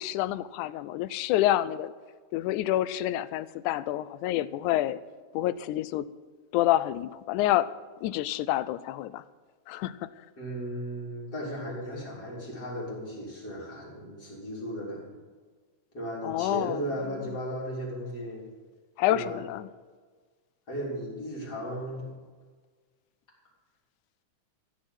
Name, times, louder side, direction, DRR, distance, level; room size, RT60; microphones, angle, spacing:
voice 1, 0.0-1.9 2.3-5.0 5.3-6.1 6.5-7.7 8.0-9.2 9.7-10.1 16.2-16.8 19.0-19.7, left 14 dB, 90° left, 17 dB, 2.1 m, -28 dB
voice 2, 10.4-15.1 15.9-18.5 19.1-19.4 20.7-22.1, equal, 30° left, -3 dB, 4.0 m, -36 dB
14.0 x 6.4 x 9.6 m, 1.5 s
omnidirectional pair, 3.4 m